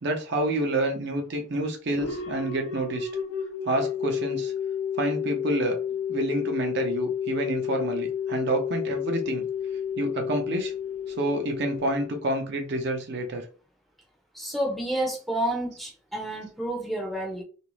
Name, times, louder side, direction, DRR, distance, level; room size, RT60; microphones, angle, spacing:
voice 1, 0.0-3.1 3.7-4.5 5.0-5.8 6.1-9.5 10.0-10.7 11.1-13.4, right 1 dB, 55° right, 0.6 m, -28 dB
sound 1, 1.9-12.6, left 7 dB, 85° left, 0.7 m, -31 dB
voice 2, 14.3-17.4, right 1 dB, ahead, 0.6 m, -30 dB
2.5 x 2.0 x 3.1 m
head